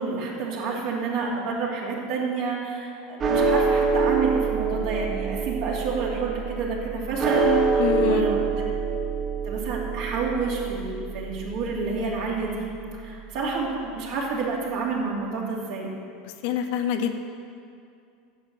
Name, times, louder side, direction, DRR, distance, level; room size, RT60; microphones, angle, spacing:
voice 1, 0.0-8.4 9.4-12.7 13.0-15.9, right 4 dB, 55° right, -3 dB, 2.8 m, -29 dB
sound 1, 3.2-13.6, right 4 dB, 35° right, 1.9 m, -26 dB
voice 2, 7.8-8.3 16.4-17.2, left 9 dB, 60° left, 6 dB, 0.9 m, -26 dB
10.5 x 7.6 x 7.8 m, 2.4 s
figure-of-eight pair, 75°, 0 cm